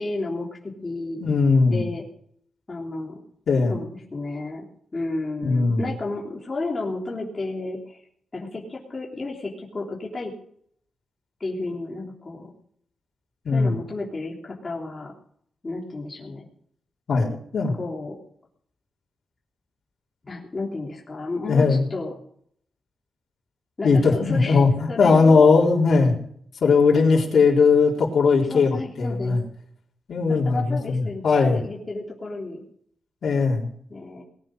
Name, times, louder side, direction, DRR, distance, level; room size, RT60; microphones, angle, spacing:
voice 1, 0.0-1.2 1.7-2.0 2.7-3.2 3.7-4.6 4.9-8.0 8.3-10.3 11.4-12.5 13.5-15.1 15.6-16.5 17.8-18.2 20.2-22.1 23.8-25.5 28.5-29.4 30.3-32.6 33.9-34.2, left 2 dB, 30° left, -3 dB, 3.3 m, -32 dB
voice 2, 1.2-1.8 3.5-3.7 5.4-5.9 13.5-13.7 17.1-17.7 21.5-21.8 23.8-26.1 26.6-28.7 29.0-29.4 30.1-31.6 33.2-33.7, left 4 dB, 65° left, -3 dB, 4.0 m, -19 dB
19.5 x 9.9 x 6.4 m, 0.63 s
wide cardioid pair, 110°, 0 cm